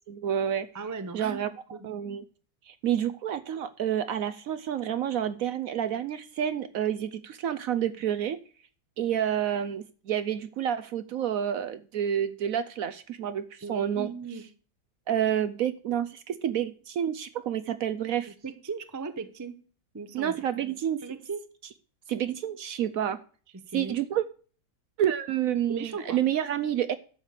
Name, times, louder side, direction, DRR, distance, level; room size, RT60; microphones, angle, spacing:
voice 1, 0.1-0.7 1.1-1.5 1.8-2.2 2.7-8.4 9.0-14.1 15.1-18.3 20.1-21.1 22.1-23.2 23.7-24.2 25.0-27.0, right 10 dB, 65° right, 13 dB, 0.9 m, -29 dB
voice 2, 0.7-1.9 13.6-14.5 18.4-19.6 19.9-20.4 21.0-21.4 23.7-24.0 25.7-26.2, right 5 dB, 20° right, 10 dB, 0.4 m, -37 dB
11.5 x 5.0 x 7.3 m, 0.41 s
omnidirectional pair, 1.8 m